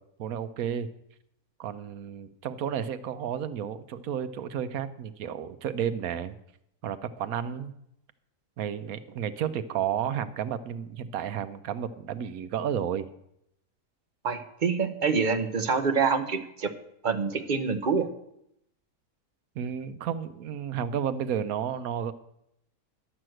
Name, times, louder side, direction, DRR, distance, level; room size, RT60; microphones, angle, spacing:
voice 1, 0.2-0.9 1.6-6.4 6.8-7.7 8.6-13.1 19.6-22.1, right 8 dB, 75° right, 12 dB, 1.1 m, -32 dB
voice 2, 14.2-16.7 17.0-18.1, right 5 dB, 40° right, 8 dB, 0.8 m, -26 dB
11.5 x 6.2 x 7.7 m, 0.78 s
omnidirectional pair, 1.6 m